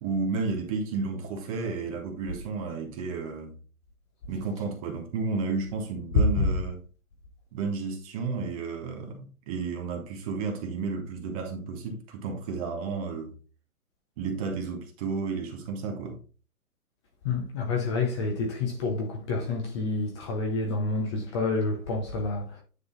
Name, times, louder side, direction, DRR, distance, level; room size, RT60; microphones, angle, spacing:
voice 1, 0.0-3.6 4.3-6.8 7.5-13.3 14.2-16.2, right 4 dB, 25° right, 1.4 m, -32 dB
voice 2, 17.2-22.6, left 3 dB, 20° left, 0.8 m, -29 dB
9.7 x 3.8 x 3.9 m
hypercardioid pair, 155°, 44 cm